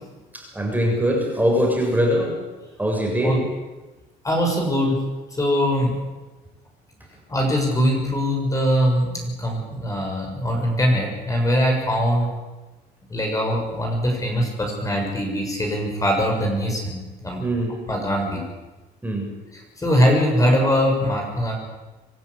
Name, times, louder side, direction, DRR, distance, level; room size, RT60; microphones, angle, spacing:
voice 1, 0.3-2.4 2.8-3.5 17.4-17.8 19.0-19.3, equal, 10° right, 0 dB, 7.2 m, -22 dB
voice 2, 4.2-5.0 5.4-5.9 7.3-12.3 13.1-17.5 17.9-18.4 19.5-21.5, equal, 20° left, 1 dB, 6.8 m, -22 dB
25.5 x 13.5 x 10.0 m, 1.2 s
cardioid pair, 110°, 17 cm